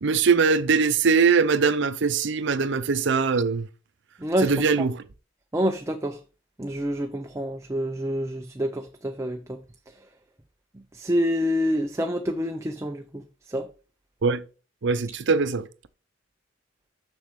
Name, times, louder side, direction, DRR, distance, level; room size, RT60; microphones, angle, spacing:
voice 1, 0.0-3.7 4.4-5.0 14.2-14.4 14.8-15.7, right 5 dB, 65° right, 0.6 m, -21 dB
voice 2, 4.2-4.9 5.5-6.2 6.6-9.6 10.9-13.2 13.5-13.7, equal, 15° right, 0.6 m, -27 dB
7.3 x 6.2 x 3.6 m
head